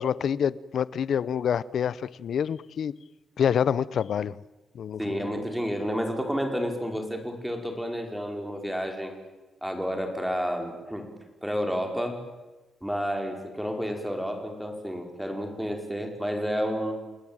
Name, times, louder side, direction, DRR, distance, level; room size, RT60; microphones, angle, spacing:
voice 1, 0.0-2.9 3.4-4.4 4.7-5.3, left 8 dB, 60° left, 0.8 m, -27 dB
voice 2, 5.0-9.1 9.6-11.1 11.4-12.2 12.8-17.1, equal, 5° right, 5.1 m, -30 dB
30.0 x 20.5 x 9.0 m
cardioid pair, 140°, 0 cm